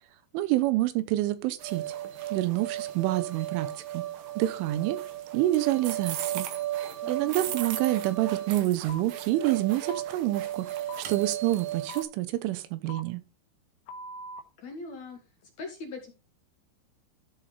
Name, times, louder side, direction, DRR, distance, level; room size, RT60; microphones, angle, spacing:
voice 1, 0.3-1.8 2.3-4.0 4.4-5.0 5.3-6.5 7.1-10.7 11.1-13.2, right 15 dB, 90° right, 3.4 m, -27 dB
sound 1, 1.6-12.0, right 12 dB, 70° right, 2.1 m, -35 dB
voice 2, 7.0-7.5 14.6-16.1, left 3 dB, 60° left, 1.9 m, -42 dB
sound 2, 8.9-9.0 9.9-10.0 10.9-11.0 11.9-12.0 12.9-13.0 13.9-14.4, equal, 85° left, 3.4 m, -40 dB
13.0 x 5.1 x 4.0 m
omnidirectional pair, 5.4 m